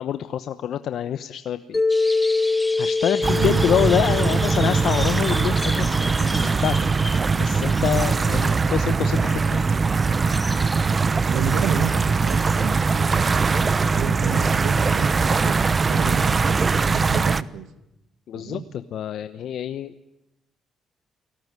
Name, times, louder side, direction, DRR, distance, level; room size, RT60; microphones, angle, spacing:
voice 1, 0.0-1.8 2.8-6.9 7.4-9.7 18.3-19.9, left 9 dB, 70° left, 11 dB, 0.9 m, -26 dB
Mallet percussion, 1.7-5.9, left 3 dB, 25° left, 1.6 m, -25 dB
sound 1, 1.9-12.6, left 1 dB, 5° left, 1.0 m, -36 dB
sound 2, 3.2-17.4, right 4 dB, 35° right, 0.9 m, -21 dB
voice 2, 11.3-13.6 13.9-17.7 18.3-18.6, right 8 dB, 85° right, 10 dB, 2.2 m, -31 dB
29.5 x 18.5 x 9.6 m, 0.92 s
cardioid pair, 90°, 0 cm